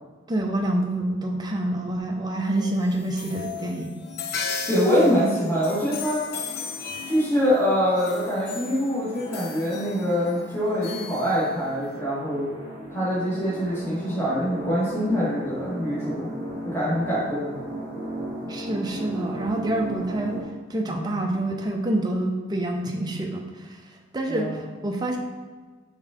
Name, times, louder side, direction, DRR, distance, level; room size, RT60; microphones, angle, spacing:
voice 1, 0.3-4.0 18.5-20.4 20.7-23.8 24.1-25.2, right 1 dB, 20° right, 2 dB, 0.6 m, -27 dB
sound 1, 2.5-12.0, left 5 dB, 50° left, 0.5 m, -37 dB
voice 2, 4.7-6.2 7.1-12.5 12.9-16.3 16.6-17.5 24.3-24.5, equal, 10° left, -10 dB, 1.7 m, -24 dB
sound 2, 4.9-20.4, right 1 dB, 30° left, 1.6 m, -37 dB
5.4 x 3.6 x 5.0 m, 1.4 s
head